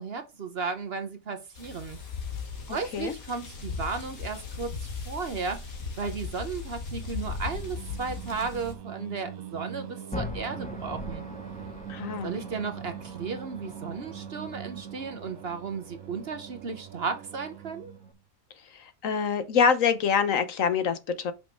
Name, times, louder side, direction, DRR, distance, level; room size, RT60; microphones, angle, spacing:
voice 1, 0.0-2.0 2.7-5.6 6.0-11.2 12.2-17.9, right 4 dB, 50° right, 1.1 m, -34 dB
sound 1, 1.5-8.7, left 5 dB, 85° left, 2.2 m, -38 dB
Singing, 7.0-18.2, right 10 dB, 90° right, 1.1 m, -42 dB
sound 2, 10.1-18.1, left 2 dB, 5° left, 0.8 m, -43 dB
voice 2, 11.9-12.3 19.0-21.3, left 6 dB, 70° left, 1.3 m, -25 dB
6.2 x 5.5 x 4.5 m
omnidirectional pair, 1.5 m